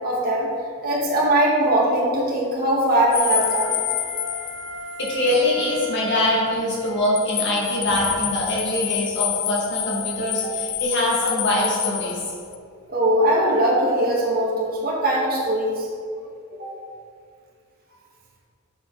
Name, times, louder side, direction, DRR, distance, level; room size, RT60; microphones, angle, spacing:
voice 1, 0.0-0.5 0.8-3.8 12.9-15.9 16.6-16.7, right 1 dB, 45° right, -4 dB, 1.9 m, -21 dB
sound 1, 3.1-5.5 5.8-5.9 6.9-12.6, left 13 dB, 75° left, 0.5 m, -28 dB
Wind instrument woodwind instrument, 3.3-8.0, left 1 dB, 60° right, 1.7 m, -38 dB
voice 2, 5.0-12.2, left 1 dB, 55° left, -4 dB, 2.1 m, -23 dB
7.9 x 7.4 x 4.0 m, 2.3 s
head